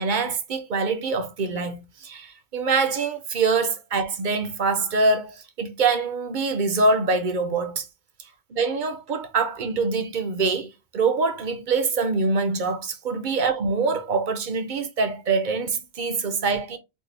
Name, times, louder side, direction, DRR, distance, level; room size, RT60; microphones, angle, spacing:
voice 1, 0.0-7.9 8.5-16.8, right 4 dB, 50° right, 0.8 m, -24 dB
4.5 x 2.3 x 3.2 m
omnidirectional pair, 1.1 m